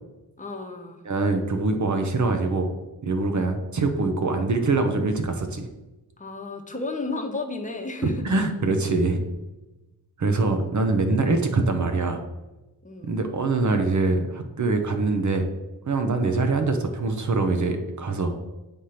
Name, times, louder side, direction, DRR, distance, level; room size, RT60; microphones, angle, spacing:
voice 1, 0.4-1.0 6.2-8.2 12.8-13.2, left 3 dB, 20° left, 3 dB, 1.2 m, -33 dB
voice 2, 1.0-2.7 3.0-5.7 8.2-9.2 10.2-12.2 13.0-15.5 15.9-18.4, right 3 dB, 45° right, 6 dB, 0.9 m, -24 dB
9.2 x 3.4 x 5.7 m, 1.1 s
cardioid pair, 90°, 40 cm